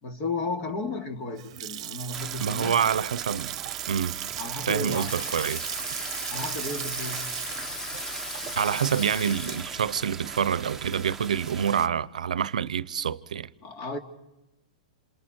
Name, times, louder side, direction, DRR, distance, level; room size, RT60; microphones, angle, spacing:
voice 1, 0.0-2.8 4.4-5.1 6.3-7.3 13.6-14.0, left 3 dB, 35° left, 2.8 m, -33 dB
Water tap faucet / Sink (filling or washing) / Splash splatter, 1.1-10.0, right 14 dB, 55° right, 0.9 m, -37 dB
sound 1, 2.1-11.9, right 6 dB, 10° right, 1.2 m, -40 dB
voice 2, 2.4-3.6 3.9-4.2 4.7-5.7 8.5-13.5, right 8 dB, 85° right, 0.8 m, -27 dB
Water tap faucet / Sink (filling or washing), 4.9-10.1, left 2 dB, 20° left, 1.5 m, -37 dB
29.0 x 27.5 x 4.5 m
hypercardioid pair, 140°, 4 cm